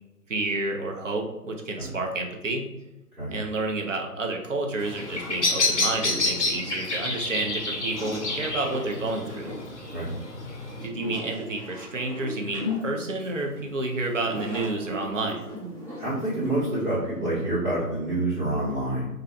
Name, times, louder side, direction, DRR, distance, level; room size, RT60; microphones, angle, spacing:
voice 1, 0.3-2.7 3.3-9.5 10.8-15.4, right 2 dB, 55° right, 2 dB, 0.5 m, -30 dB
sound 1, 4.8-16.9, left 2 dB, 20° right, 0.8 m, -39 dB
Bird vocalization bird call bird song, 4.9-10.9, left 3 dB, 50° left, 0.5 m, -29 dB
sound 2, 12.1-18.2, right 3 dB, 40° right, 1.1 m, -44 dB
voice 2, 16.0-19.1, right 1 dB, 90° right, -9 dB, 1.3 m, -27 dB
2.5 x 2.1 x 2.5 m, 1.0 s
figure-of-eight pair, 160°, 47 cm